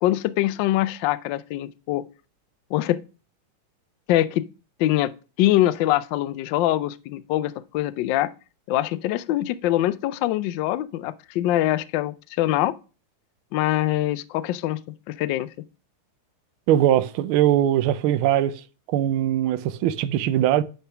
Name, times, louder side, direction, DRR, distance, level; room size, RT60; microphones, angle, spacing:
voice 1, 0.0-2.0 2.7-3.0 4.1-4.5 4.8-5.1 5.4-8.3 8.7-12.8 13.5-14.8 15.1-15.5, left 14 dB, 75° left, 1.1 m, -23 dB
voice 2, 16.7-18.6 18.9-20.6, right 12 dB, 75° right, 1.4 m, -21 dB
10.0 x 3.4 x 5.7 m
omnidirectional pair, 2.4 m